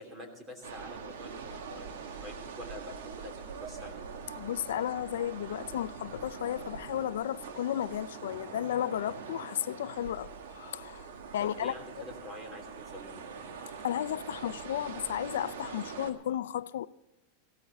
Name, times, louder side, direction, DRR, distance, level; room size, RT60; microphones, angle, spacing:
voice 1, 0.0-3.9 11.4-13.2, left 1 dB, 20° right, 3.1 m, -46 dB
sound 1, 0.6-16.1, right 6 dB, 80° right, 1.7 m, -43 dB
voice 2, 4.4-11.1 11.3-11.7 13.8-16.9, left 11 dB, 90° left, 0.4 m, -33 dB
16.5 x 13.5 x 4.1 m
supercardioid pair, 155°, 0 cm